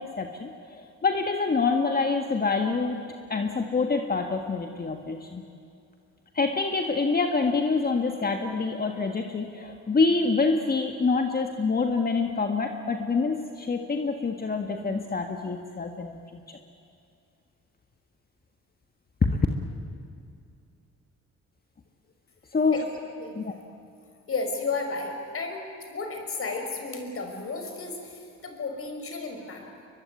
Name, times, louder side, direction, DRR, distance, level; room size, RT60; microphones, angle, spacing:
voice 1, 0.0-3.0 3.3-5.4 6.3-16.6 19.3-19.4 22.5-22.8 23.3-23.6, left 4 dB, 30° left, 4 dB, 1.8 m, -26 dB
voice 2, 24.3-29.9, left 3 dB, 45° left, 4 dB, 5.4 m, -33 dB
23.0 x 22.5 x 9.6 m, 2.5 s
cardioid pair, 90°, 30 cm